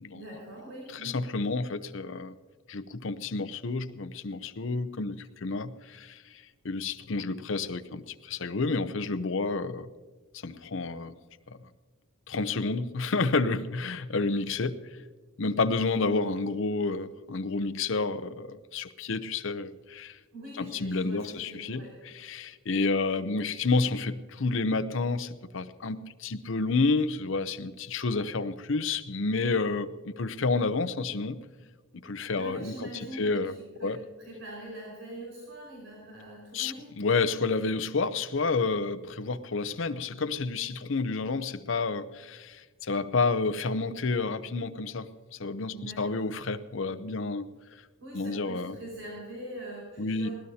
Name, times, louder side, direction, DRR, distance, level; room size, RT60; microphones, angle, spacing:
voice 1, 0.1-1.2 20.3-21.9 32.4-36.9 45.7-46.2 48.0-50.3, right 1 dB, 70° right, 5.2 m, -43 dB
voice 2, 0.9-2.3 2.7-6.2 6.6-9.9 10.3-11.2 12.3-14.9 15.4-20.2 20.6-31.4 31.9-32.9 33.2-33.5 33.8-34.0 36.5-47.5 48.1-48.8 50.0-50.3, left 3 dB, 60° left, 0.7 m, -30 dB
20.0 x 18.0 x 2.8 m
head